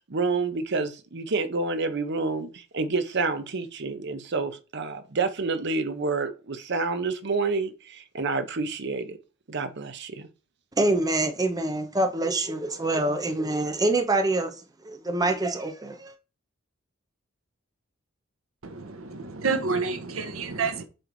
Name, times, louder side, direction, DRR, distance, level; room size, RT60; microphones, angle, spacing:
voice 1, 0.0-9.2 9.5-10.3, right 4 dB, 55° right, 0.8 m, -28 dB
voice 2, 10.8-14.6 14.8-16.1, right 2 dB, 20° right, 0.7 m, -25 dB
voice 3, 18.6-20.8, right 4 dB, 90° right, 0.9 m, -29 dB
7.8 x 3.3 x 3.9 m
head